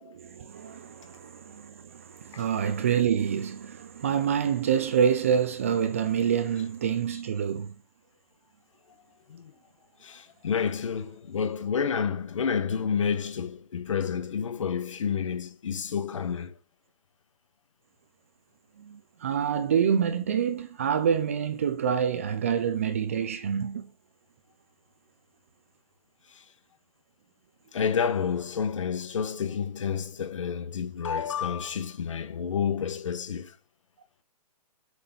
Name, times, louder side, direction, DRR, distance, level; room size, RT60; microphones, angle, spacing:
voice 1, 0.0-7.7 18.8-23.9, right 8 dB, 20° right, 0.5 m, -27 dB
voice 2, 10.0-16.5 27.7-33.5, left 7 dB, 50° left, 1.2 m, -29 dB
8.0 x 6.5 x 6.9 m
hypercardioid pair, 175°, 20 cm